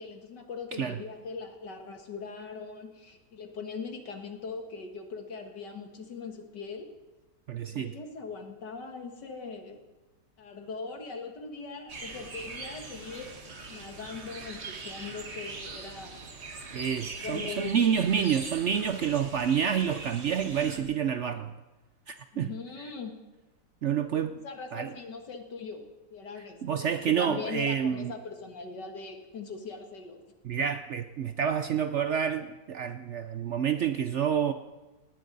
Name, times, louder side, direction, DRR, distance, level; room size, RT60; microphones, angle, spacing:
voice 1, 0.0-6.9 7.7-9.8 10.4-13.3 13.7-16.2 17.2-17.7 22.3-23.2 24.4-30.2, left 4 dB, 85° left, 4 dB, 2.4 m, -41 dB
voice 2, 7.5-7.9 16.7-21.5 22.1-22.5 23.8-24.4 24.7-24.9 26.6-28.1 30.4-34.5, right 8 dB, 65° right, 9 dB, 0.7 m, -28 dB
sound 1, 11.9-20.8, right 3 dB, 40° right, 1.7 m, -42 dB
18.5 x 18.5 x 4.0 m, 1.1 s
omnidirectional pair, 1.8 m